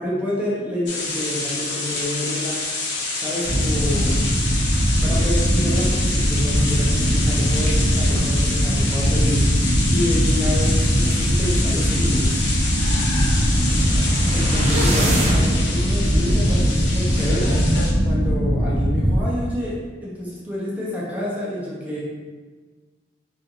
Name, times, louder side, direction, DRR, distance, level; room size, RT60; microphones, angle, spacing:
voice 1, 0.0-2.6 3.2-4.2 5.0-9.5 9.9-12.4 14.3-17.6 18.0-22.0, left 1 dB, 10° right, -7 dB, 0.9 m, -28 dB
sound 1, 0.9-17.9, left 3 dB, 80° left, 0.8 m, -28 dB
sound 2, 3.4-19.2, equal, 90° right, 0.9 m, -20 dB
sound 3, 13.4-15.6, right 1 dB, 40° right, 0.8 m, -27 dB
4.1 x 3.2 x 2.6 m, 1.4 s
head